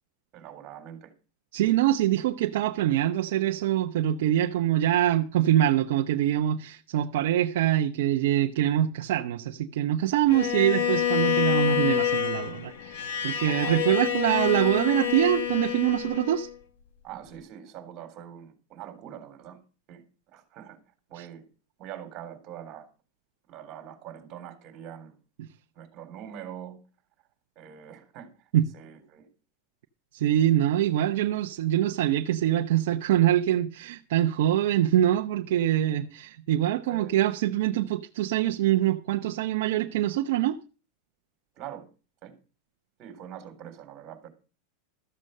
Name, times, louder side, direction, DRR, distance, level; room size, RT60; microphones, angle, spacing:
voice 1, 0.3-1.1 13.5-13.8 17.0-19.6 19.9-20.0 20.3-20.8 21.1-21.5 21.8-22.9 23.5-25.2 25.7-26.8 27.6-29.3 36.9-37.2 41.6-41.9 42.2-42.3 43.0-44.3, right 10 dB, 35° right, 3.8 m, -43 dB
voice 2, 1.5-16.5 21.2-21.3 25.4-25.5 28.5-28.7 30.1-40.6, right 12 dB, 70° right, 0.8 m, -24 dB
Bowed string instrument, 10.3-16.5, left 9 dB, 80° left, 1.8 m, -27 dB
13.5 x 7.5 x 6.6 m
supercardioid pair, 160°, 0 cm